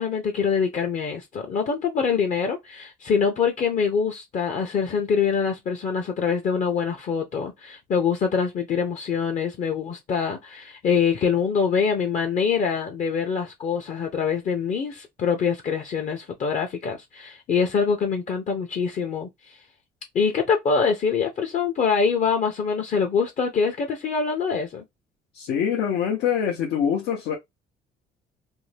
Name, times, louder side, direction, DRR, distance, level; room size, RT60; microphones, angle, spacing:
voice 1, 0.0-19.6 20.1-24.8, left 6 dB, 45° left, 0.6 m, -24 dB
voice 2, 25.3-27.4, left 8 dB, 85° left, 0.7 m, -24 dB
2.6 x 2.1 x 3.2 m
cardioid pair, 110°, 17 cm